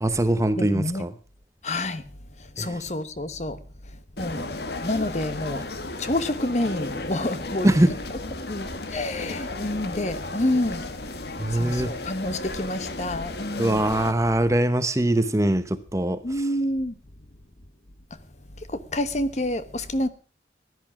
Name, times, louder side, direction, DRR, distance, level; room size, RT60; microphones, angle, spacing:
voice 1, 0.0-1.1 2.6-2.8 7.6-7.9 11.4-11.9 13.6-16.2, right 1 dB, 15° right, 0.9 m, -22 dB
voice 2, 0.5-1.1 1.6-2.1 2.4-3.6 4.2-4.5 4.8-5.6 6.0-7.7 8.5-10.9 11.5-13.8 16.2-17.0 18.6-20.1, left 1 dB, 40° left, 1.1 m, -28 dB
sound 1, 4.2-14.1, left 2 dB, 65° left, 1.5 m, -34 dB
15.5 x 11.0 x 6.1 m
head